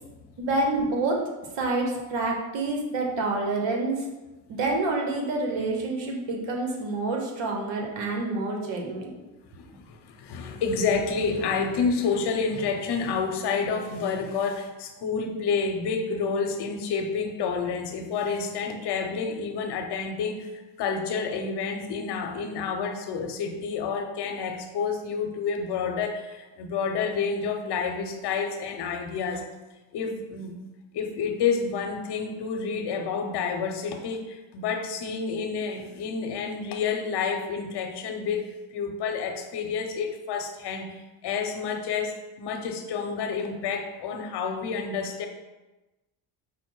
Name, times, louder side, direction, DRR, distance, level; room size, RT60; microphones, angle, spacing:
voice 1, 0.4-1.2 1.6-4.1 4.5-9.1, right 2 dB, 70° right, 1 dB, 1.1 m, -27 dB
voice 2, 9.5-29.4 29.9-30.6 30.9-45.3, left 5 dB, 60° left, 5 dB, 0.8 m, -29 dB
5.0 x 2.1 x 4.5 m, 1.1 s
cardioid pair, 90°, 46 cm